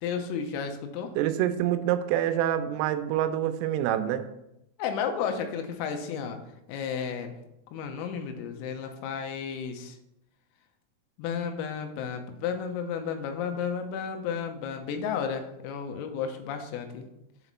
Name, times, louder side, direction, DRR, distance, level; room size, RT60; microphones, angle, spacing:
voice 1, 0.0-1.1 4.8-6.4 6.7-7.4 7.7-10.0 11.2-17.1, left 7 dB, 90° left, 6 dB, 3.6 m, -32 dB
voice 2, 1.2-4.3, right 11 dB, 85° right, 9 dB, 3.2 m, -26 dB
7.9 x 5.0 x 5.5 m, 0.84 s
omnidirectional pair, 5.9 m